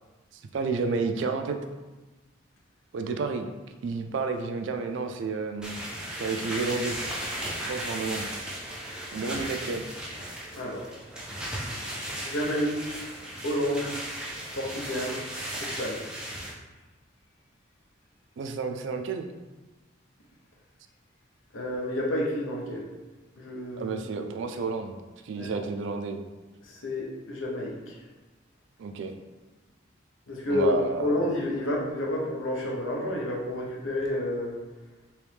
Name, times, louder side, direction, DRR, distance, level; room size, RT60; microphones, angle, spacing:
voice 1, 0.5-1.6 2.9-3.5 3.8-5.8 6.1-7.0 7.7-8.3 9.1-9.8 18.4-19.3 23.8-24.9 25.2-26.2 28.8-29.1 30.5-31.1, right 4 dB, 70° right, 5 dB, 0.3 m, -30 dB
sound 1, 5.6-16.5, right 1 dB, 5° right, 0.4 m, -36 dB
voice 2, 10.5-10.9 12.2-13.0 13.4-14.0 14.5-15.2 15.6-16.0 21.5-22.9 23.4-24.3 25.3-25.6 26.6-28.0 30.3-34.6, left 1 dB, 85° left, -2 dB, 0.8 m, -30 dB
3.2 x 3.0 x 3.3 m, 1.2 s
head